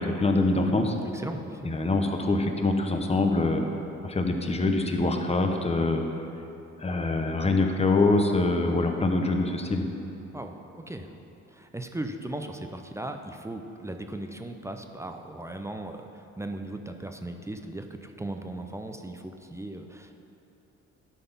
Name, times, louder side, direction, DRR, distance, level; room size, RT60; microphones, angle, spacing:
voice 1, 0.0-0.9 1.6-3.7 4.0-6.0 6.8-9.9, left 2 dB, 20° left, 4 dB, 0.8 m, -24 dB
voice 2, 1.1-1.8 10.3-11.1 11.5-20.2, right 1 dB, 10° right, 5 dB, 0.5 m, -37 dB
11.5 x 4.1 x 5.4 m, 2.9 s
cardioid pair, 90°, 30 cm